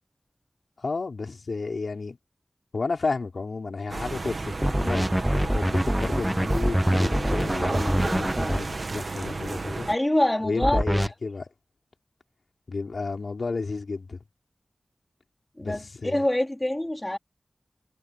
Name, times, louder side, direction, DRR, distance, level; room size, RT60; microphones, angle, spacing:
voice 1, 0.8-2.2 2.7-9.9 10.4-11.5 12.7-14.2 15.6-16.3, left 4 dB, 80° left, 4.5 m, -32 dB
sound 1, 3.9-9.9, right 3 dB, 60° right, 1.4 m, -32 dB
sound 2, 4.6-8.6 10.6-11.1, equal, 10° right, 0.4 m, -24 dB
voice 2, 9.9-10.8 15.6-17.2, left 1 dB, 20° left, 3.6 m, -25 dB
wide cardioid pair, 55°, 0 cm